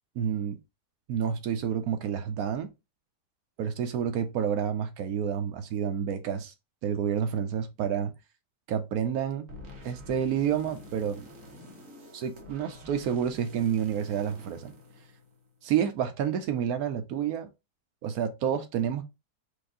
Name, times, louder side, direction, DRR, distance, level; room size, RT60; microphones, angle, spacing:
voice 1, 0.2-0.6 1.1-2.7 3.6-6.5 6.8-8.1 8.7-9.5 9.8-11.3 12.1-14.7 15.6-17.5 18.0-19.0, right 8 dB, 70° right, 1.0 m, -29 dB
sound 1, 9.5-15.6, left 2 dB, 55° right, 1.4 m, -48 dB
4.7 x 2.6 x 3.6 m
omnidirectional pair, 1.8 m